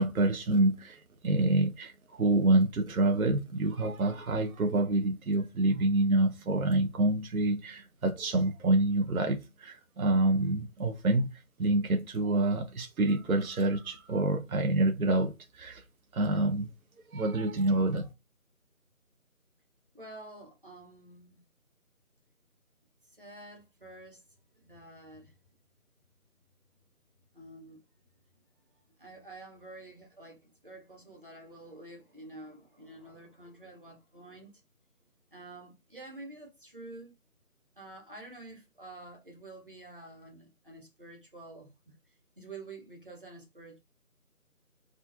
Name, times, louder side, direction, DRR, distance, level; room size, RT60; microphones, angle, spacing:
voice 1, 0.0-11.3 11.6-15.8 16.1-16.7 17.1-18.1, right 2 dB, 70° right, 0.6 m, -27 dB
voice 2, 19.9-21.4 23.2-24.2 24.6-25.3 27.3-27.8 29.0-34.5 35.3-37.2 37.8-42.0 42.4-43.8, right 2 dB, 40° right, 0.9 m, -49 dB
2.4 x 2.3 x 2.5 m
figure-of-eight pair, 170°, 44 cm